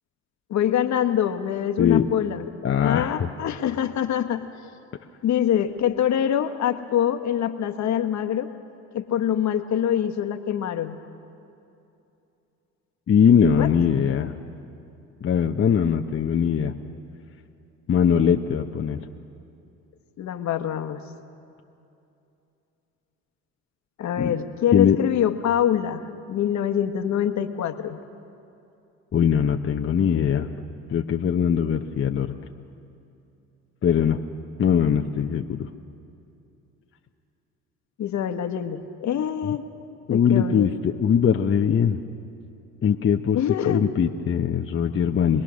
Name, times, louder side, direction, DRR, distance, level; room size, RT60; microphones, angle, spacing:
voice 1, 0.5-2.4 2.8-4.4 5.2-8.5 8.9-11.0 13.6-13.7 20.2-21.0 24.0-28.0 38.0-39.6 40.1-40.7 43.3-43.8, left 10 dB, 55° left, 8 dB, 1.4 m, -25 dB
voice 2, 1.8-2.1 2.6-3.3 13.1-14.3 15.2-16.7 17.9-19.0 24.2-24.3 24.7-25.0 29.1-30.5 30.9-32.3 33.8-34.2 34.6-35.7 39.4-39.6 40.1-42.0 42.8-45.4, left 7 dB, 40° left, 3 dB, 0.9 m, -21 dB
25.0 x 19.5 x 6.4 m, 2.7 s
supercardioid pair, 70°, 33 cm